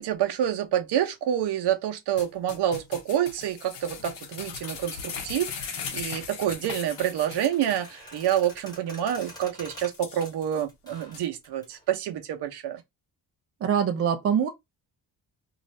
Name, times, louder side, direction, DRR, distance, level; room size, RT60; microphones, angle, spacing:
voice 1, 0.0-12.8, right 10 dB, 80° right, 0.7 m, -28 dB
sound 1, 2.2-7.9 8.2-8.3 8.7-8.8 9.2-9.3 9.8-10.6 11.1-11.2, left 6 dB, 90° left, 0.9 m, -38 dB
sound 2, 6.6-11.8, equal, 10° left, 1.3 m, -46 dB
voice 2, 13.6-14.5, right 8 dB, 35° right, 0.4 m, -23 dB
2.6 x 2.5 x 3.0 m
wide cardioid pair, 180°, 39 cm